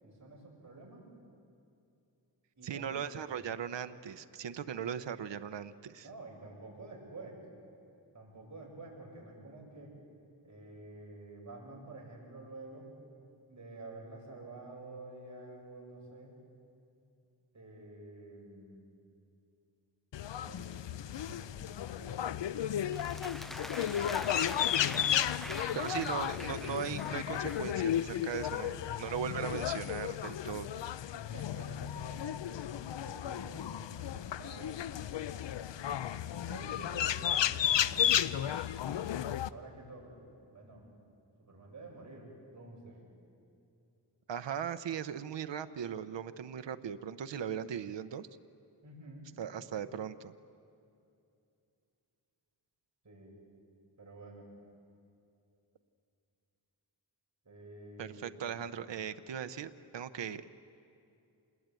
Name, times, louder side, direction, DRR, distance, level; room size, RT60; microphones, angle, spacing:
voice 1, 0.0-1.1 2.6-3.5 6.0-7.4 8.1-10.0 10.4-12.9 13.5-16.4 17.5-18.8 20.4-22.7 23.7-24.3 25.3-26.3 28.6-29.0 31.1-32.6 33.0-34.8 36.3-38.2 39.5-40.2 40.5-40.8 41.4-43.1 48.8-49.3 53.0-53.4 54.0-54.5 57.4-58.9, right 2 dB, 40° right, -2 dB, 8.0 m, -50 dB
voice 2, 2.6-6.1 25.7-30.7 44.3-48.3 49.4-50.3 58.0-60.5, right 8 dB, 80° right, 10 dB, 0.9 m, -38 dB
sound 1, 20.1-39.5, left 10 dB, 80° left, 0.7 m, -34 dB
sound 2, 22.9-27.7, equal, ahead, 0.5 m, -44 dB
27.0 x 20.5 x 9.1 m, 2.6 s
wide cardioid pair, 100°, 43 cm